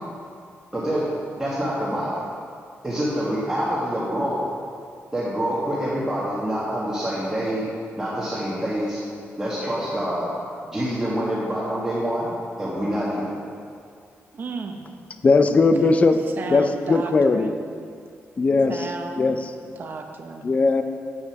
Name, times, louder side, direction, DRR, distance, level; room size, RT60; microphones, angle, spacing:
voice 1, 1.3-2.2 2.8-4.4 5.1-7.6 8.0-9.0 9.4-10.3 10.6-12.3 12.6-13.3, equal, 10° right, -9 dB, 1.5 m, -26 dB
voice 2, 14.3-14.9 16.2-17.6 18.7-20.5, right 4 dB, 45° right, 3 dB, 0.8 m, -34 dB
voice 3, 15.2-16.2 16.5-17.5 18.4-18.7 19.2-19.4 20.4-20.8, left 3 dB, 30° left, 8 dB, 0.5 m, -18 dB
9.0 x 6.8 x 5.8 m, 2.3 s
wide cardioid pair, 170°, 5 cm